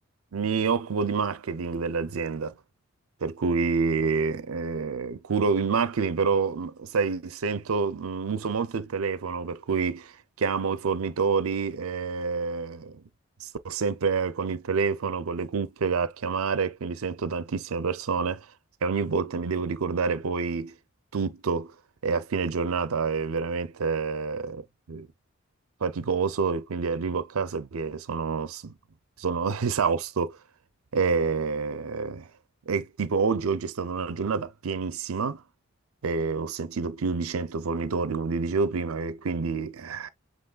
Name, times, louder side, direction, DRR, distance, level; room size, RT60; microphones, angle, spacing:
voice 1, 0.3-2.5 3.2-10.1 10.4-13.0 13.4-18.5 18.8-20.7 21.1-21.7 22.0-25.1 25.8-28.7 29.2-30.4 30.9-32.3 32.7-35.4 36.0-40.1, right 5 dB, 90° right, 0.6 m, -28 dB
7.8 x 3.0 x 2.3 m
head